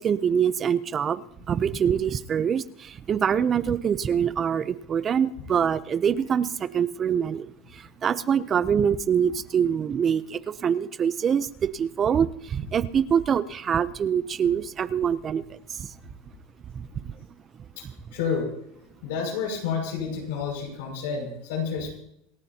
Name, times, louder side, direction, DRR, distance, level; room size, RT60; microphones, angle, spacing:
voice 1, 0.0-15.9 16.7-17.1, right 8 dB, 25° right, 15 dB, 0.5 m, -25 dB
voice 2, 18.1-18.5 19.0-21.9, left 6 dB, 80° left, 2 dB, 6.0 m, -29 dB
27.5 x 13.5 x 2.8 m, 0.76 s
supercardioid pair, 155°, 0 cm